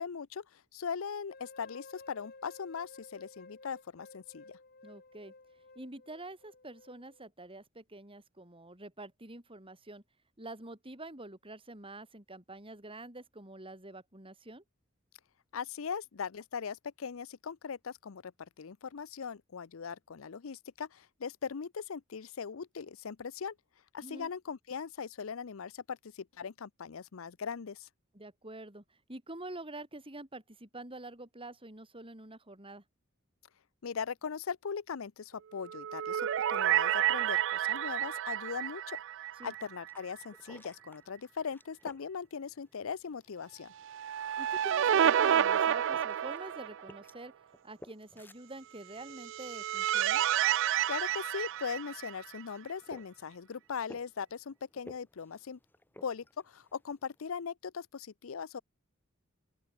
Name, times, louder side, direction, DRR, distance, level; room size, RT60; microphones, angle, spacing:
voice 1, 0.0-4.6 15.5-23.5 23.9-27.9 33.8-39.0 39.4-43.7 50.9-55.6 56.0-58.6, left 6 dB, 85° left, 0.6 m, -40 dB
sound 1, 1.3-7.3, left 3 dB, 50° left, 3.5 m, -54 dB
voice 2, 4.8-5.3 5.8-10.0 10.4-14.6 24.0-24.3 28.1-32.8 39.4-39.5 44.4-47.3 47.6-50.3, right 2 dB, 25° right, 5.1 m, -47 dB
Synth Sparkle, 35.6-39.9 40.2-40.3 43.8-47.0 49.0-52.4, right 10 dB, 65° right, 0.4 m, -30 dB
drinking water, 39.4-57.2, left 1 dB, 10° left, 3.0 m, -59 dB
open air
head